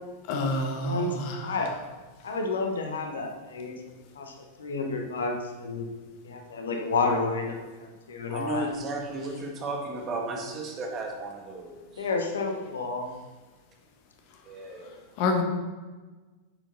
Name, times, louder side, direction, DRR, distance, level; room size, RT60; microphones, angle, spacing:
voice 1, 0.3-1.5 15.2-15.4, left 2 dB, 45° left, 3 dB, 1.5 m, -27 dB
voice 2, 0.8-1.7 2.2-3.7 4.1-5.9 6.2-8.7 12.0-13.1, left 3 dB, 65° left, 3 dB, 1.3 m, -30 dB
voice 3, 8.3-12.1 14.4-15.0, right 2 dB, 30° right, 2 dB, 1.7 m, -34 dB
9.3 x 7.5 x 4.2 m, 1.3 s
figure-of-eight pair, 90°, 0 cm